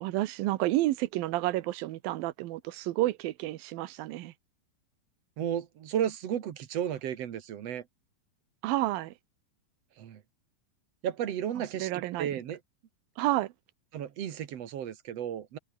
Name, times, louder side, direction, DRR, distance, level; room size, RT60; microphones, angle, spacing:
voice 1, 0.0-4.3 8.6-9.1 11.8-12.4 13.2-13.5, right 16 dB, 75° right, 2.7 m, -30 dB
voice 2, 5.4-7.9 10.0-10.2 11.0-12.6 13.9-15.6, right 10 dB, 55° right, 2.2 m, -33 dB
omnidirectional pair, 4.3 m